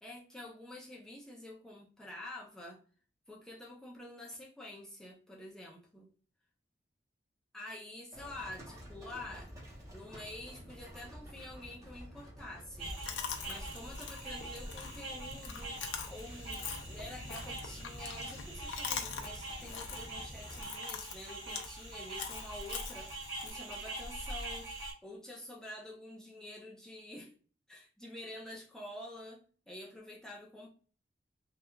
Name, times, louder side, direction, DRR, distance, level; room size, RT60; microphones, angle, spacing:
voice 1, 0.0-2.8 3.3-6.0 7.5-9.5 9.9-12.9 13.5-23.1 23.4-24.7 25.0-27.3 27.7-30.7, left 1 dB, 5° left, -3 dB, 0.4 m, -48 dB
Livestock farm animals working animals, 8.1-20.6, equal, 20° right, 0.8 m, -51 dB
sound 1, 12.8-24.9, right 2 dB, 70° right, 1.5 m, -44 dB
Chewing mastication, 13.1-23.5, left 7 dB, 70° left, 0.4 m, -44 dB
2.9 x 2.3 x 2.3 m, 0.41 s
head